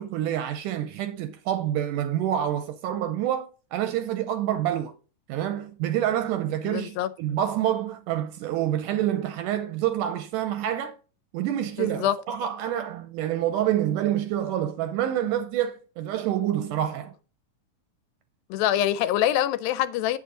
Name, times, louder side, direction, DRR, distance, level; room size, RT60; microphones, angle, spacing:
voice 1, 0.0-4.9 5.3-11.0 11.3-17.1, right 11 dB, 80° right, 2.0 m, -27 dB
voice 2, 6.6-7.1 11.8-12.2 18.5-20.2, left 12 dB, 90° left, 2.4 m, -25 dB
8.0 x 6.9 x 3.7 m
omnidirectional pair, 4.1 m